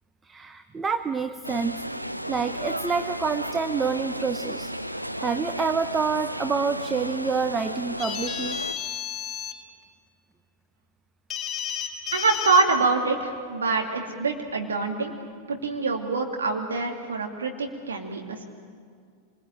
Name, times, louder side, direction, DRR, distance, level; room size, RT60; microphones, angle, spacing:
voice 1, 0.3-1.8 2.3-8.6, right 5 dB, 15° right, 9 dB, 0.8 m, -28 dB
sound 1, 1.4-8.7, equal, 90° right, 0.8 m, -33 dB
sound 2, 8.0-9.5 11.3-12.6, left 9 dB, 20° left, 4.4 m, -32 dB
voice 2, 12.1-15.1 15.5-18.4, right 4 dB, 70° right, 2 dB, 2.5 m, -25 dB
26.0 x 21.0 x 9.1 m, 2.1 s
figure-of-eight pair, 90°, 0 cm